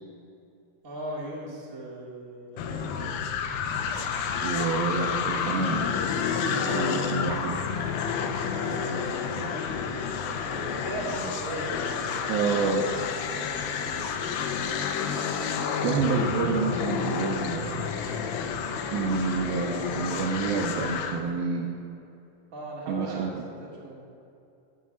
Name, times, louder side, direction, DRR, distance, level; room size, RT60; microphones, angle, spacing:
voice 1, 0.8-3.3 8.3-9.8 10.4-12.5 12.8-14.0 22.5-24.0, right 1 dB, 30° right, -5 dB, 1.4 m, -39 dB
sound 1, 2.6-21.2, left 6 dB, 85° left, 2.1 m, -30 dB
voice 2, 4.4-5.9 6.6-7.6 12.3-12.9 15.8-17.9 18.9-21.7 22.9-23.4, right 5 dB, 80° right, -1 dB, 2.3 m, -28 dB
9.7 x 6.7 x 7.4 m, 2.7 s
omnidirectional pair, 5.1 m